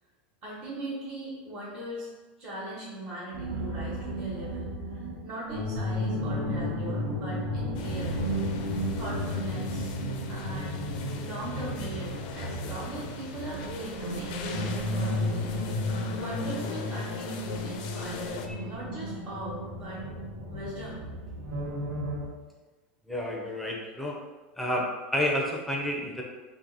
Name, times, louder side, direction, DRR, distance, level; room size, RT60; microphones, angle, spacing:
voice 1, 0.4-2.1 2.4-8.1 8.9-9.9 10.3-10.9 11.2-15.5 16.1-20.0 20.5-21.0, right 1 dB, 35° right, -10 dB, 1.1 m, -39 dB
sound 1, 3.3-22.3, equal, 65° right, 0.9 m, -33 dB
sound 2, 7.7-18.5, left 6 dB, 55° left, 0.4 m, -42 dB
voice 2, 23.1-24.2 24.6-26.2, left 1 dB, ahead, -1 dB, 0.5 m, -30 dB
2.7 x 2.6 x 3.8 m, 1.3 s
supercardioid pair, 155°, 5 cm